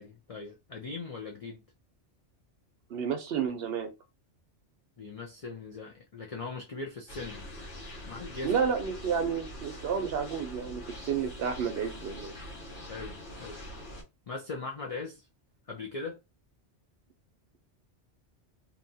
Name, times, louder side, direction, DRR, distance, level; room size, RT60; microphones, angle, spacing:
voice 1, 0.0-1.6 5.0-7.5 8.1-8.6 12.9-13.6 14.3-15.3 15.7-16.2, left 3 dB, 65° left, 0.3 m, -40 dB
voice 2, 2.9-3.9 8.4-12.3, right 6 dB, 65° right, 0.7 m, -31 dB
sound 1, 7.1-14.0, equal, 85° left, 1.3 m, -44 dB
2.7 x 2.3 x 2.6 m
omnidirectional pair, 1.2 m